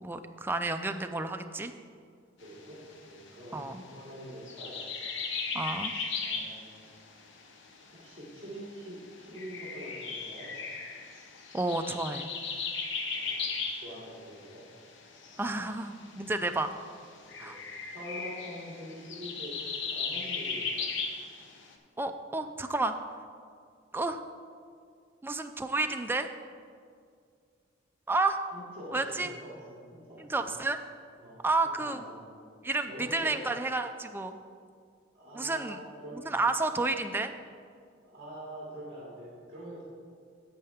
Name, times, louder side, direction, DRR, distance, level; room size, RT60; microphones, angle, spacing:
voice 1, 0.0-1.7 3.5-3.8 5.5-5.9 11.5-12.3 15.4-16.7 17.4-17.6 22.0-22.9 23.9-24.2 25.2-26.3 28.1-28.4 28.9-29.3 30.2-30.8 31.4-32.0 32.6-34.3 35.3-35.8 36.2-37.3, right 3 dB, 10° right, 6 dB, 0.4 m, -31 dB
sound 1, 2.4-21.7, left 4 dB, 65° left, 0.9 m, -37 dB
voice 2, 2.4-4.8 6.2-6.8 7.9-10.5 13.1-13.5 13.7-14.6 15.3-15.6 17.2-17.6 17.9-20.9 28.5-30.5 31.2-31.4 31.8-32.2 32.9-33.5 35.1-36.3 38.0-39.8, equal, 35° right, -8 dB, 2.5 m, -45 dB
11.0 x 7.7 x 3.5 m, 2.2 s
head